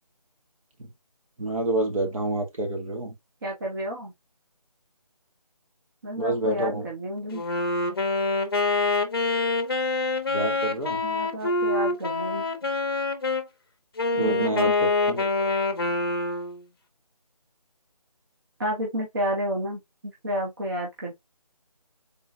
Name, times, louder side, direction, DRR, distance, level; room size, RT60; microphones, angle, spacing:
voice 1, 1.4-3.1 6.2-6.9 10.3-11.0 14.2-15.5, right 2 dB, 60° right, 1.7 m, -28 dB
voice 2, 3.4-4.1 6.0-7.4 11.0-12.4 14.1-14.7 18.6-21.2, equal, 35° right, 1.1 m, -31 dB
Wind instrument woodwind instrument, 7.3-13.5 14.0-16.6, left 3 dB, 40° left, 0.7 m, -26 dB
3.9 x 3.6 x 2.7 m
figure-of-eight pair, 165°, 20 cm